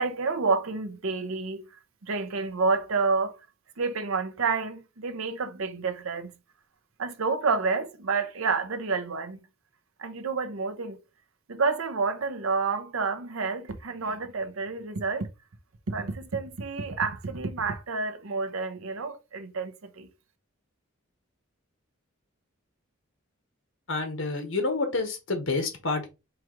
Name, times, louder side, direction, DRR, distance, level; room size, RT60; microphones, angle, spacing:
voice 1, 0.0-1.6 2.1-3.3 3.8-6.3 7.0-9.4 10.0-11.0 11.5-15.3 15.9-20.1, right 4 dB, 75° right, 0.7 m, -29 dB
voice 2, 23.9-26.1, left 3 dB, 65° left, 1.3 m, -28 dB
4.8 x 2.5 x 4.5 m
head